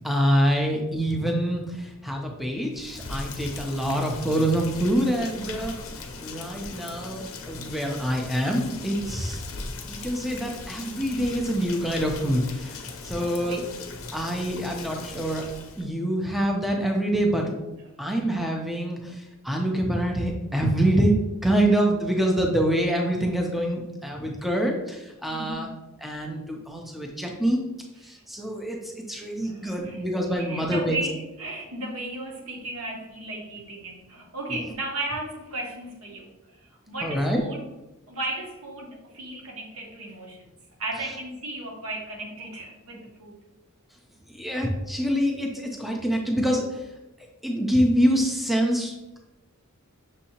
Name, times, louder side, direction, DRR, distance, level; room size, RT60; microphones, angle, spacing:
voice 1, 0.0-5.8 6.2-9.4 9.9-13.6 14.1-17.6 18.0-25.7 26.0-27.6 28.0-31.0 34.5-34.6 37.0-37.4 44.3-46.8 47.4-49.0, right 1 dB, ahead, 0 dB, 0.4 m, -25 dB
Rain, 2.7-15.9, left 3 dB, 65° left, 0.5 m, -39 dB
voice 2, 13.1-13.6 25.3-25.8 28.0-28.1 29.4-37.7 38.1-40.5 40.8-43.4, right 2 dB, 75° right, 0 dB, 1.0 m, -35 dB
6.3 x 2.7 x 2.8 m, 1.0 s
head